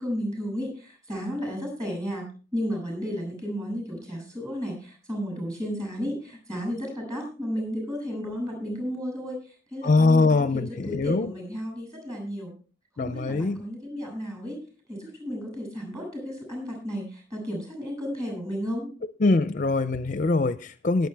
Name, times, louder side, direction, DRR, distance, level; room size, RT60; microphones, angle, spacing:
voice 1, 0.0-12.5 13.0-14.6 14.9-18.9, equal, 20° right, 6.6 m, -33 dB
voice 2, 9.8-11.3 13.0-13.6 19.2-21.1, left 3 dB, 40° left, 0.5 m, -22 dB
20.5 x 7.9 x 3.4 m
head